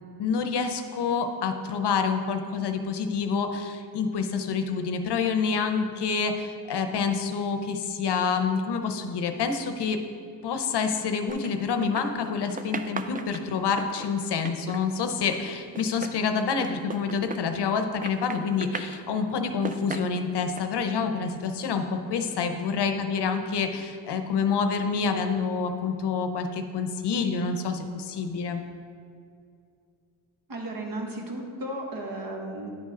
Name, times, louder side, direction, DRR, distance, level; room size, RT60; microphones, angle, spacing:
voice 1, 0.2-10.0 10.4-28.6, left 5 dB, 75° left, 7 dB, 0.7 m, -27 dB
sound 1, 11.3-12.3 12.6-17.8 18.0-19.0 19.5-20.6, right 4 dB, 20° right, 0.3 m, -37 dB
voice 2, 30.5-32.7, right 1 dB, 55° right, 0 dB, 1.4 m, -34 dB
10.0 x 3.6 x 4.3 m, 2.4 s
cardioid pair, 75°, 41 cm